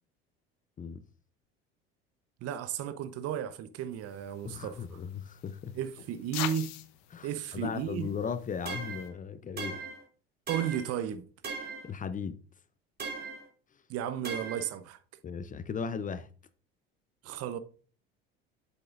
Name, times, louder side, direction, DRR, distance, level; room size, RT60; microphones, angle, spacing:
voice 1, 2.4-5.0 5.7-6.7 7.2-8.1 10.5-11.2 13.9-15.0 17.2-17.6, right 9 dB, 50° right, 0.9 m, -34 dB
sound 1, 4.0-9.1, left 13 dB, 60° left, 0.8 m, -44 dB
voice 2, 4.4-5.7 7.1-9.8 11.6-12.4 15.2-16.3, left 6 dB, 25° left, 0.6 m, -37 dB
sound 2, 8.7-9.1 9.6-10.0 10.5-10.9 11.4-11.9 13.0-13.4 14.2-14.7, right 4 dB, 30° right, 2.8 m, -38 dB
7.7 x 7.1 x 2.5 m
hypercardioid pair, 70°, 30 cm